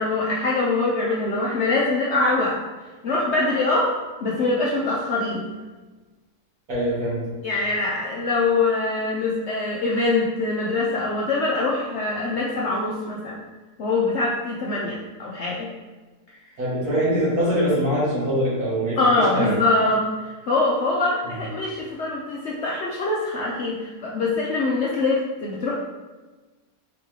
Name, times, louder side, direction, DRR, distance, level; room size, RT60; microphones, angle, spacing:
voice 1, 0.0-2.6 3.0-3.9 4.2-5.5 7.4-13.4 13.8-15.7 19.0-25.8, left 2 dB, 65° left, -4 dB, 0.7 m, -23 dB
voice 2, 6.7-7.2 16.6-19.5 21.3-21.4, equal, 65° right, -7 dB, 2.1 m, -23 dB
4.8 x 3.1 x 3.6 m, 1.3 s
omnidirectional pair, 1.7 m